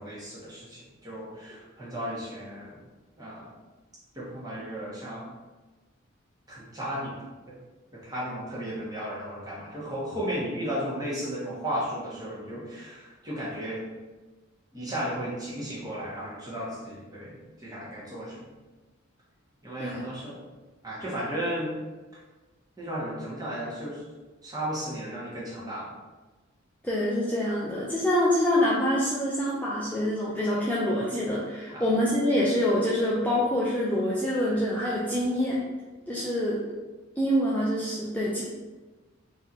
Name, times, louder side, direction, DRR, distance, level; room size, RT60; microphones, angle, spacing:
voice 1, 0.0-2.8 3.2-3.5 4.1-5.3 6.5-7.2 7.5-7.6 8.0-13.8 14.7-18.4 19.6-20.4 20.8-21.8 22.8-24.0 24.4-25.9 31.7-31.9, equal, 20° right, -7 dB, 1.4 m, -34 dB
voice 2, 26.8-35.6 36.1-36.6 37.2-38.4, left 1 dB, 10° left, -7 dB, 0.5 m, -26 dB
3.9 x 2.9 x 4.0 m, 1.2 s
head